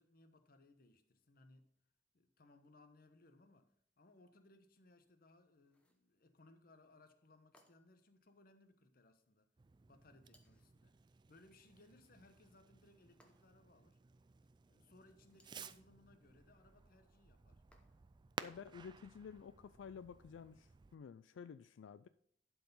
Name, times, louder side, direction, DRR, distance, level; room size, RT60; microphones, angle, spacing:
voice 1, 0.0-1.7 2.1-9.5 9.9-10.9 11.3-14.0 14.7-17.6, left 2 dB, 50° left, 1.0 m, -66 dB
sound 1, 5.6-6.1 7.5-8.1 10.3-10.8 13.2-13.7 15.2-15.7 17.7-18.2, left 1 dB, 5° left, 1.0 m, -72 dB
Fireworks, 9.6-21.0, right 5 dB, 25° right, 0.3 m, -56 dB
voice 2, 18.4-22.1, left 6 dB, 85° left, 0.3 m, -52 dB
11.5 x 4.7 x 5.5 m
head